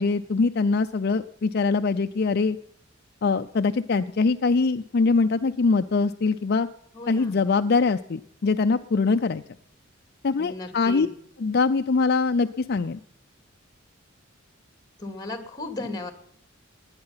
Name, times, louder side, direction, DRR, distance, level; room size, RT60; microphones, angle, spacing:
voice 1, 0.0-2.6 3.2-6.7 7.1-9.4 10.2-11.1 11.4-13.0, left 4 dB, 50° left, 9 dB, 0.5 m, -23 dB
voice 2, 6.9-7.4 10.4-11.1 15.0-16.1, left 2 dB, 20° left, 7 dB, 2.3 m, -35 dB
19.5 x 9.8 x 5.7 m, 0.69 s
head